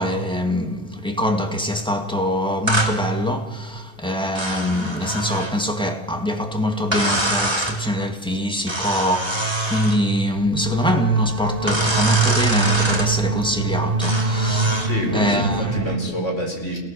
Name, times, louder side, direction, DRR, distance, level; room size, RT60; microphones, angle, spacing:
voice 1, 0.0-14.8 15.1-16.2, equal, 5° left, 2.2 m, -23 dB
sound 1, 2.7-3.0 4.4-5.6 6.9-7.8 8.7-10.0 11.7-13.1 14.0-14.9, right 1 dB, 20° right, 2.9 m, -24 dB
sound 2, 10.3-16.0, right 3 dB, 45° right, 2.5 m, -24 dB
voice 2, 14.8-16.8, equal, 65° left, 5.2 m, -27 dB
28.5 x 18.0 x 6.7 m
omnidirectional pair, 1.3 m